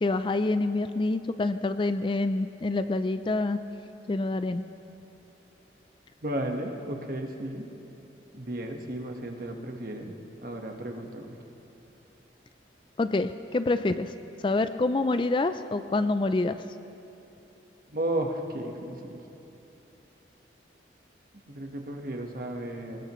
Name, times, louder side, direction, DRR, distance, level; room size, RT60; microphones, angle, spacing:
voice 1, 0.0-3.6 4.1-4.6 13.0-14.1 14.4-16.6, left 2 dB, 25° left, 11 dB, 0.3 m, -27 dB
voice 2, 6.2-7.7 8.3-10.2 10.4-11.3 17.9-19.2 21.5-23.0, right 1 dB, 50° right, 2 dB, 1.3 m, -34 dB
22.0 x 19.5 x 3.1 m, 3.0 s
head